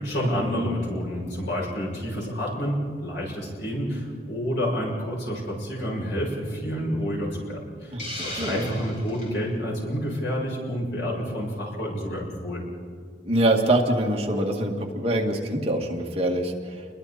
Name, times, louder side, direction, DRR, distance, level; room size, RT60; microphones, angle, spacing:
voice 1, 0.0-12.6, equal, 75° left, -4 dB, 7.2 m, -29 dB
voice 2, 7.9-8.7 13.3-16.5, right 1 dB, 35° right, 0 dB, 2.1 m, -24 dB
Hiss, 8.0-9.3, left 1 dB, 45° left, 6.8 m, -35 dB
30.0 x 22.0 x 4.3 m, 2.2 s
head